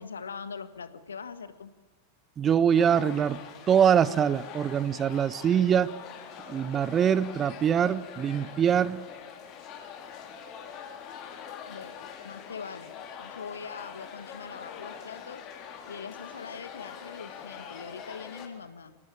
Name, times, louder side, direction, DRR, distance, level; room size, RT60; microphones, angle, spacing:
voice 1, 0.0-1.7 11.7-15.4 15.8-19.0, left 6 dB, 70° left, 12 dB, 1.6 m, -42 dB
voice 2, 2.4-3.4 3.7-5.9 6.5-9.0, right 8 dB, 25° right, 20 dB, 0.8 m, -23 dB
sound 1, 2.7-18.5, left 7 dB, 35° left, 3.9 m, -44 dB
25.0 x 19.0 x 9.0 m, 1.3 s
figure-of-eight pair, 90°, 0 cm